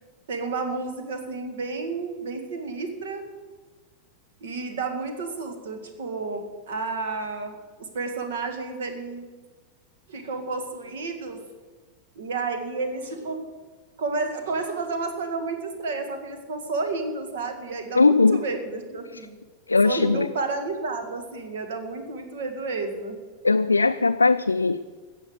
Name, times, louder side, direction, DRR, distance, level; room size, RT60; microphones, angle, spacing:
voice 1, 0.3-3.2 4.4-7.6 7.9-9.3 10.1-11.4 12.2-13.4 14.0-19.4 19.8-23.2, right 3 dB, 60° right, 6 dB, 2.0 m, -31 dB
voice 2, 18.0-18.4 19.7-20.3 23.4-24.9, left 3 dB, 80° left, 8 dB, 0.4 m, -19 dB
15.0 x 7.8 x 7.9 m, 1.4 s
figure-of-eight pair, 90°, 0 cm